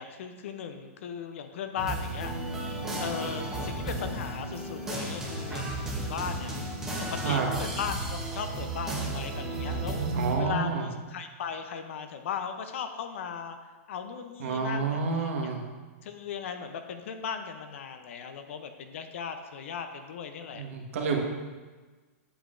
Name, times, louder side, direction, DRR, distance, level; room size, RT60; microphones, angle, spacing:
voice 1, 0.0-2.5 3.0-6.6 7.1-10.1 10.4-13.6 13.9-15.5 16.0-20.6, left 7 dB, 60° left, 7 dB, 0.7 m, -37 dB
sound 1, 1.8-10.3, right 2 dB, 5° right, 1.0 m, -33 dB
voice 2, 10.1-10.9 14.4-15.6 20.5-21.2, right 5 dB, 65° right, 1 dB, 1.4 m, -29 dB
8.2 x 7.9 x 2.6 m, 1.3 s
hypercardioid pair, 160°, 8 cm